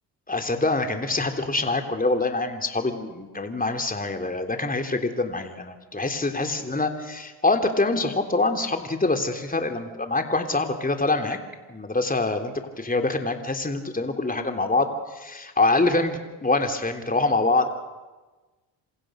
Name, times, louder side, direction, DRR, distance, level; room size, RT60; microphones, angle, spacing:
voice 1, 0.3-11.4 11.7-17.7, left 2 dB, 15° left, 5 dB, 3.5 m, -25 dB
28.5 x 26.0 x 6.5 m, 1.2 s
hypercardioid pair, 55°, 49 cm